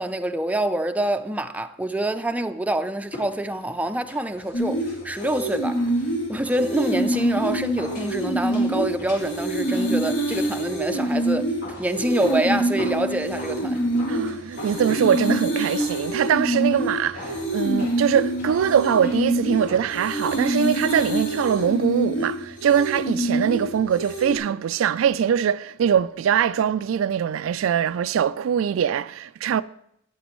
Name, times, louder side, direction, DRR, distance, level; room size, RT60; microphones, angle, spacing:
voice 1, 0.0-5.8 6.3-11.5 11.8-13.8, right 1 dB, 5° right, 0.4 m, -26 dB
sound 1, 3.0-21.8 22.1-22.2, left 2 dB, 55° left, 3.1 m, -43 dB
sound 2, 4.5-24.4, right 1 dB, 75° left, 2.5 m, -26 dB
voice 2, 14.1-29.6, right 8 dB, 85° right, 0.3 m, -22 dB
13.0 x 9.4 x 3.1 m
head